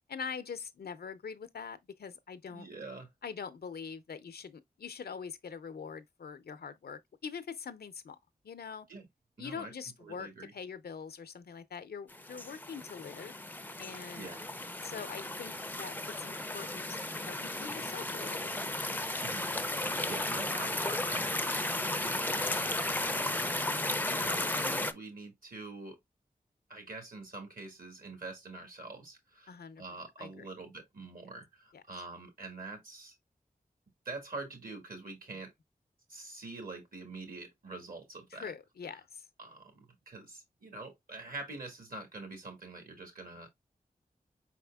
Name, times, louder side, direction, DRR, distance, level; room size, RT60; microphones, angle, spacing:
voice 1, 0.1-2.7 3.2-8.2 8.4-8.9 9.4-13.3 13.8-14.3 14.8-17.0 17.3-18.6 29.5-29.8 30.2-30.5 31.7-31.8 38.3-39.3, left 6 dB, 85° left, 0.5 m, -43 dB
voice 2, 2.5-3.1 8.9-9.1 9.4-9.7 10.0-10.5 14.1-14.4 19.2-19.4 19.8-22.6 24.0-26.0 26.7-33.1 34.0-35.5 36.1-38.5 39.4-43.6, right 3 dB, 65° right, 1.8 m, -45 dB
sound 1, 12.1-24.9, left 1 dB, 10° left, 0.4 m, -34 dB
4.7 x 4.2 x 2.2 m
wide cardioid pair, 95°, 16 cm